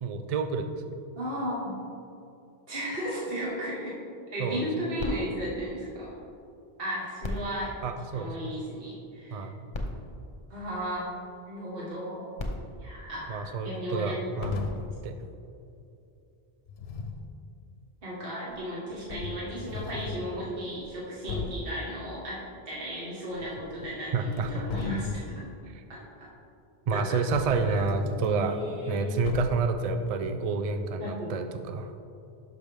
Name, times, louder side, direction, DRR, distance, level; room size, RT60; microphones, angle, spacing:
voice 1, 0.0-1.0 4.4-4.7 7.8-8.5 9.3-9.7 13.3-14.7 15.0-15.2 24.1-24.7 25.7-25.8 26.9-28.6 28.9-32.0, right 4 dB, 45° right, 7 dB, 0.5 m, -29 dB
voice 2, 1.1-1.8 2.7-4.0 4.3-6.1 6.8-7.7 8.1-9.5 10.5-11.2 11.5-12.3 12.8-14.2 18.0-25.4 25.9-26.3 26.9-27.2 27.6-27.8 28.1-29.0 31.0-31.3, equal, 65° right, -6 dB, 1.8 m, -35 dB
sound 1, 5.0-6.6 7.2-8.8 9.4-9.5 9.7-11.3 12.1-13.9 14.7-14.8, left 1 dB, 35° left, 1.0 m, -39 dB
sound 2, 14.4-15.0 16.7-17.3 18.5-18.6 19.1-20.3 20.8-20.9 21.3-21.7 23.3-24.0 24.3-25.4 27.3-28.3 29.2-29.8, left 4 dB, 85° left, 0.9 m, -37 dB
11.5 x 5.6 x 3.5 m, 2.6 s
omnidirectional pair, 1.0 m